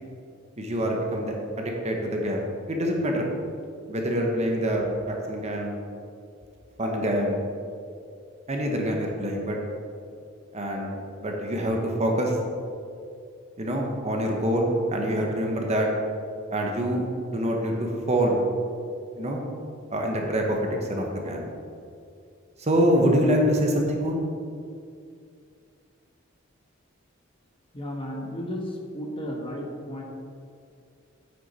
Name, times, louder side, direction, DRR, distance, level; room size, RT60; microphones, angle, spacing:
voice 1, 0.6-3.3 3.9-5.8 6.8-7.4 8.5-9.6 10.5-12.4 13.6-15.9 16.5-18.4 19.2-19.4 19.9-21.4 22.6-24.2, equal, 35° right, 1 dB, 1.0 m, -25 dB
voice 2, 27.7-30.0, equal, 25° left, -1 dB, 1.3 m, -34 dB
9.0 x 6.3 x 4.2 m, 2.4 s
head